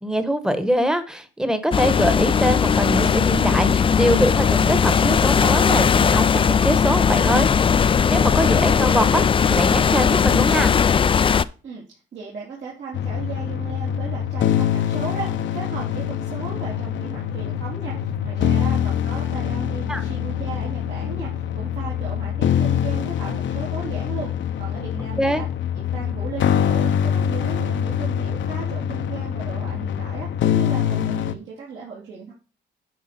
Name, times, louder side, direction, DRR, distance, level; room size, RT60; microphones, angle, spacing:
voice 1, 0.0-7.5 7.8-9.2 9.5-10.7 19.9-20.0 25.2-25.4, equal, 5° right, 10 dB, 1.1 m, -23 dB
sound 1, 1.7-11.4, left 7 dB, 25° left, 0.3 m, -18 dB
voice 2, 12.1-25.5 25.7-32.3, right 5 dB, 65° right, -6 dB, 2.9 m, -36 dB
sound 2, 12.9-31.3, left 9 dB, 70° left, 0.7 m, -24 dB
9.4 x 4.8 x 4.3 m, 0.35 s
cardioid pair, 90°, 20 cm